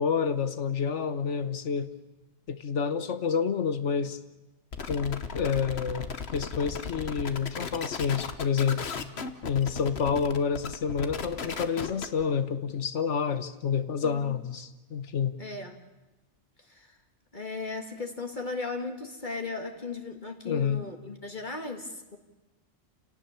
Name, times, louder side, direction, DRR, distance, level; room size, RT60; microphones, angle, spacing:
voice 1, 0.0-1.9 2.5-4.2 4.9-8.8 9.5-15.3 20.5-20.9, left 6 dB, 80° left, 12 dB, 1.4 m, -28 dB
sound 1, 4.7-12.2, left 5 dB, 60° left, 1.4 m, -36 dB
voice 2, 14.0-14.3 15.4-15.8 16.7-17.0 17.3-22.2, left 3 dB, 40° left, 5 dB, 1.8 m, -36 dB
29.0 x 18.0 x 7.0 m, 1.1 s
omnidirectional pair, 1.2 m